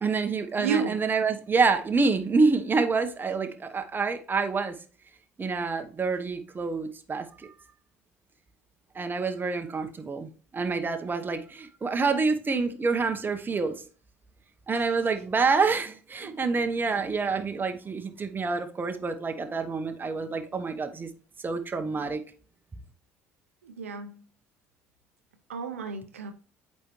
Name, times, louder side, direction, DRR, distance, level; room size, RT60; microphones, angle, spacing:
voice 1, 0.0-4.7 5.4-7.5 8.9-13.8 14.7-21.1 21.4-22.2, right 4 dB, 30° right, 1.0 m, -27 dB
voice 2, 0.6-1.0 16.2-16.5 23.6-24.2 25.5-26.3, right 6 dB, 90° right, 0.6 m, -32 dB
8.4 x 4.3 x 3.0 m
hypercardioid pair, 60°, 7 cm